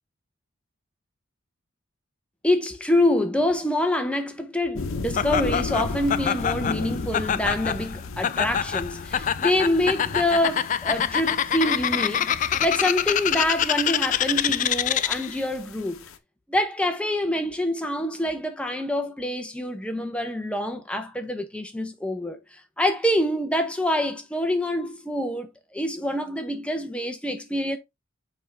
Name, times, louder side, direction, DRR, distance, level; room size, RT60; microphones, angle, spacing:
voice 1, 2.4-16.0 16.5-22.4 22.8-27.8, left 1 dB, 5° left, 0.8 m, -26 dB
sound 1, 4.8-16.2, left 3 dB, 80° left, 0.8 m, -36 dB
Laughter, 5.2-15.4, left 9 dB, 35° left, 0.3 m, -26 dB
6.1 x 4.7 x 3.4 m
head